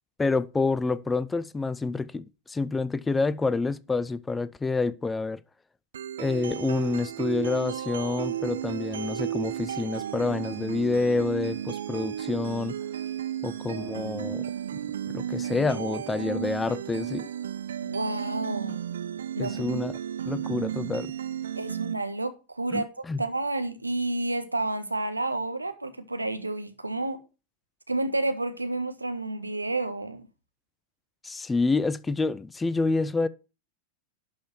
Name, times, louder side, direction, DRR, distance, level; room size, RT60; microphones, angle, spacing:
voice 1, 0.2-5.4 6.2-12.8 13.4-14.5 15.1-17.3 19.4-20.0 20.2-21.1 22.7-23.2 31.2-33.3, left 3 dB, 10° left, 0.5 m, -28 dB
sound 1, 5.9-21.9, right 10 dB, 65° right, 0.7 m, -33 dB
voice 2, 17.8-18.8 19.4-19.6 21.5-22.9 23.2-27.2 27.9-30.3, right 2 dB, 85° right, 1.4 m, -30 dB
11.5 x 5.4 x 6.1 m
figure-of-eight pair, 90°, 0 cm